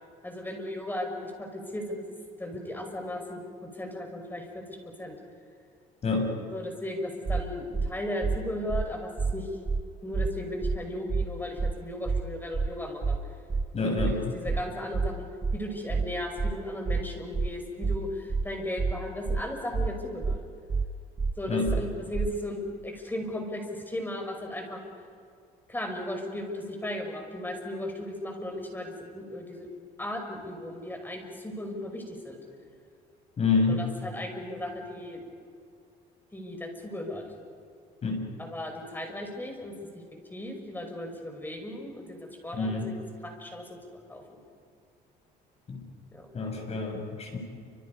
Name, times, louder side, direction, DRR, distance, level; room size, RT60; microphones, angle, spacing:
voice 1, 0.2-4.6 5.0-5.2 6.5-9.5 10.0-13.2 13.8-20.4 21.4-24.9 25.7-29.7 30.0-32.4 33.7-35.2 36.3-37.2 38.4-39.7 40.3-44.4 46.1-46.3, left 1 dB, 10° left, 3 dB, 5.8 m, -36 dB
voice 2, 6.0-6.3 13.7-14.2 21.5-21.7 33.4-33.8 38.0-38.3 42.5-42.9 45.7-45.8 46.3-47.4, left 4 dB, 40° left, 2 dB, 7.2 m, -27 dB
sound 1, 7.3-7.4 7.7-7.9 8.2-8.4 8.7-8.9 9.2-9.3 9.7-9.8 10.1-10.3 10.6-10.8 11.1-11.3 11.6-11.7 12.1-12.2 12.5-12.7 13.0-13.2 13.5-13.7 14.0-14.1 14.5-14.6 14.9-15.1 15.4-15.6 15.9-16.1 16.4-16.5 16.9-17.0 17.3-17.5 17.8-18.0 18.3-18.5 18.8-18.9 19.3-19.4 19.7-19.9 20.2-20.4 20.7-20.9 21.2-21.3 21.7-21.8 22.1-22.3, right 4 dB, 20° right, 0.6 m, -27 dB
29.5 x 26.5 x 5.5 m, 2.3 s
cardioid pair, 110°, 17 cm